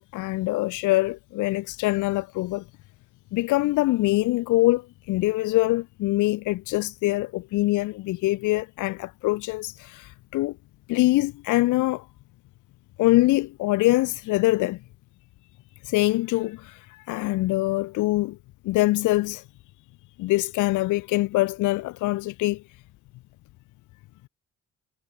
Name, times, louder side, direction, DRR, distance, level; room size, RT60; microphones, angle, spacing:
voice 1, 0.0-2.6 3.3-10.6 10.9-12.1 13.0-14.8 15.8-18.4 18.6-19.4 20.2-22.6, left 18 dB, 80° left, 0.5 m, -24 dB
cardioid pair, 90°, 30 cm